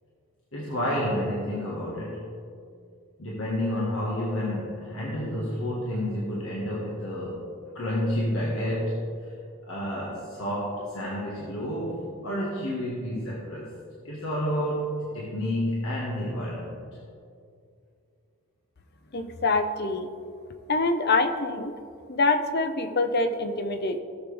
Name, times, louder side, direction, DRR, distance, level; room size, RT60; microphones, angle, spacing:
voice 1, 0.5-2.3 3.2-9.3 9.7-13.7 14.0-14.9 15.1-16.8, equal, 65° left, -5 dB, 1.7 m, -30 dB
voice 2, 19.1-20.1 20.7-21.7 22.1-24.0, left 3 dB, 45° left, 8 dB, 0.7 m, -25 dB
17.5 x 7.1 x 3.4 m, 2.4 s
head